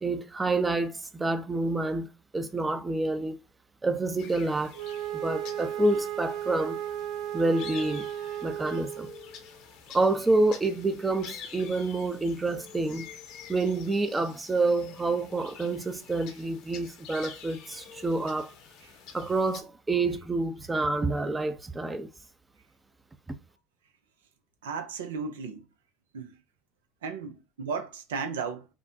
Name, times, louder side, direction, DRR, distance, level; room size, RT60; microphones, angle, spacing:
voice 1, 0.0-3.4 3.8-4.8 5.2-6.8 7.3-8.0 8.4-9.1 9.9-13.1 13.5-18.5 19.1-22.1, right 2 dB, 20° right, 0.6 m, -28 dB
sound 1, 4.2-19.6, left 7 dB, 65° left, 0.9 m, -48 dB
Wind instrument woodwind instrument, 4.7-9.3, right 11 dB, 60° right, 0.9 m, -35 dB
voice 2, 24.6-25.7 26.1-26.4 27.0-28.7, right 5 dB, 80° right, 0.5 m, -35 dB
6.0 x 2.2 x 2.7 m
hypercardioid pair, 70°, 0 cm